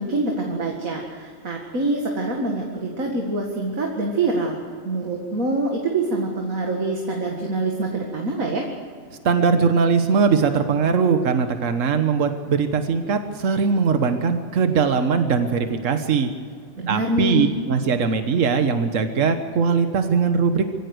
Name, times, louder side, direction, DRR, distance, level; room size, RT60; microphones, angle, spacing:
voice 1, 0.0-4.6 4.8-8.7 16.8-17.5, right 2 dB, 90° right, 0 dB, 2.4 m, -25 dB
voice 2, 9.2-16.3 16.9-20.6, right 5 dB, 70° right, 7 dB, 1.5 m, -20 dB
23.0 x 16.5 x 8.0 m, 2.1 s
omnidirectional pair, 1.4 m